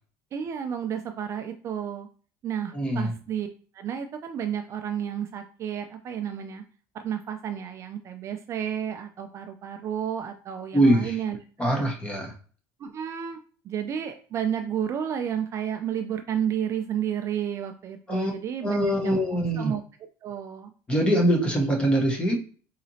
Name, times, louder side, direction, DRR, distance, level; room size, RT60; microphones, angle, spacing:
voice 1, 0.3-2.1 2.4-3.5 3.7-6.6 6.9-11.9 12.8-13.4 13.6-19.8 20.2-20.7, right 9 dB, 35° right, 6 dB, 0.3 m, -31 dB
voice 2, 2.7-3.1 10.7-11.2 11.6-12.3 18.1-18.3 18.6-19.7 20.9-22.4, right 1 dB, 15° left, 1 dB, 0.9 m, -23 dB
4.0 x 2.8 x 2.7 m, 0.41 s
cardioid pair, 140°, 8 cm